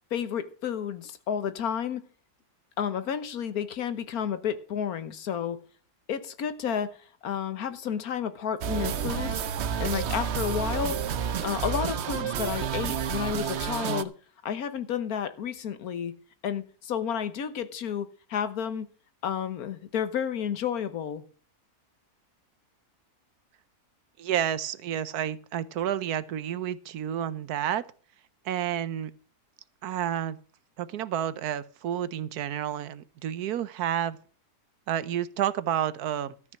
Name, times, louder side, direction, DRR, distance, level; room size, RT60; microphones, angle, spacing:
voice 1, 0.1-2.0 2.8-5.6 6.1-9.4 9.8-11.0 11.4-14.1 14.4-16.1 16.4-18.9 19.2-21.2, left 8 dB, 75° left, 1.5 m, -31 dB
sound 1, 8.6-14.0, right 8 dB, 55° right, 0.9 m, -30 dB
voice 2, 24.2-27.9 28.4-29.1 29.8-30.4 30.8-34.2 34.9-36.3, right 10 dB, 85° right, 1.3 m, -30 dB
13.5 x 5.9 x 7.6 m
omnidirectional pair, 1.6 m